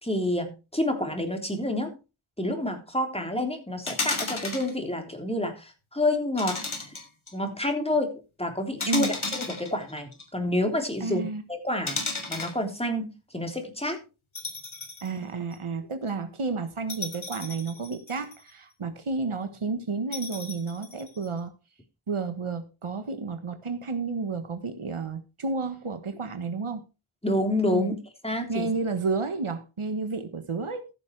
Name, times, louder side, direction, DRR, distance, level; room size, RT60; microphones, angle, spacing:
voice 1, 0.0-1.9 2.4-6.9 7.3-14.0 27.2-27.9 28.2-28.7, left 1 dB, 10° left, 3.5 m, -29 dB
sound 1, 3.9-4.7 6.4-7.3 8.8-10.2 11.9-12.6 14.3-15.1 15.5-15.6 16.9-18.5 20.1-21.3, left 3 dB, 70° left, 3.4 m, -33 dB
voice 2, 11.0-11.4 15.0-21.5 22.1-26.8 27.7-27.9 28.5-30.9, right 4 dB, 85° right, 1.5 m, -31 dB
15.0 x 6.7 x 4.7 m
wide cardioid pair, 55°, 49 cm